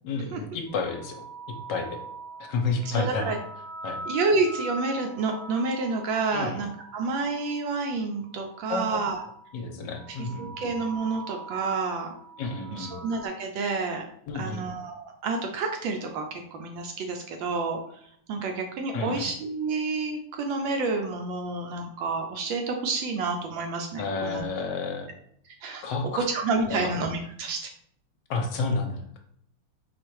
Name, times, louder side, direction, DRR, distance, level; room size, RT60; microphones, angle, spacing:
voice 1, 0.0-1.2 1.7-2.0 2.5-3.3 3.8-4.0 6.3-6.6 8.7-9.0 9.5-10.7 12.4-12.9 14.3-14.7 18.9-19.2 24.0-25.1 25.8-26.3 26.6-26.9 28.3-29.2, left 4 dB, 65° left, 3 dB, 1.2 m, -30 dB
sound 1, 0.7-7.7 8.2-9.6 9.8-13.3, right 2 dB, 45° right, 0.9 m, -42 dB
voice 2, 2.9-3.4 4.1-9.2 10.2-12.1 12.7-14.0 14.3-17.8 18.3-24.4 25.6-25.8 26.1-27.7, right 3 dB, 75° right, 3 dB, 1.2 m, -29 dB
4.5 x 2.4 x 4.5 m, 0.67 s
omnidirectional pair, 2.4 m